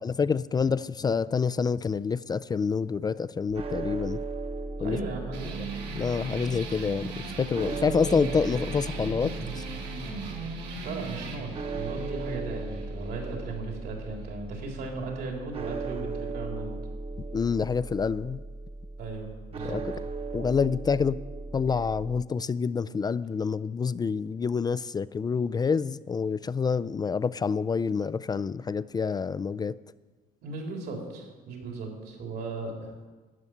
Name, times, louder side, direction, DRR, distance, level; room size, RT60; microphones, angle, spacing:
voice 1, 0.0-4.2 4.8-5.0 5.9-9.6 17.3-18.4 19.6-19.9 20.3-21.2 21.5-29.8, left 5 dB, 25° left, 17 dB, 0.3 m, -27 dB
sound 1, 3.5-22.2, right 3 dB, 35° right, 1.1 m, -37 dB
voice 2, 4.8-5.6 10.2-10.4 10.8-16.7 19.0-19.8 30.4-32.9, right 3 dB, 70° right, 0 dB, 3.9 m, -37 dB
sound 2, 5.3-14.4, right 4 dB, 85° right, 3.1 m, -39 dB
12.5 x 9.7 x 7.9 m, 1.3 s
cardioid pair, 110°, 17 cm